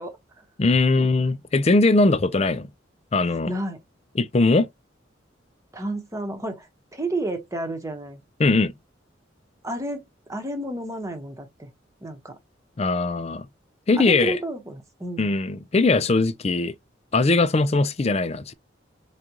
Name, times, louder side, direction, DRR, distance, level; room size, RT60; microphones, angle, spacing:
voice 1, 0.0-0.4 1.0-1.1 2.1-2.2 3.3-3.8 5.7-8.2 9.6-10.0 10.3-11.7 12.0-12.3 14.0-15.3, right 1 dB, 15° right, 1.0 m, -31 dB
voice 2, 0.6-2.7 3.1-3.5 4.2-4.7 8.4-8.7 12.8-13.5 13.9-14.4 15.2-16.7 17.1-18.5, left 3 dB, 35° left, 0.4 m, -20 dB
4.9 x 2.4 x 2.9 m
head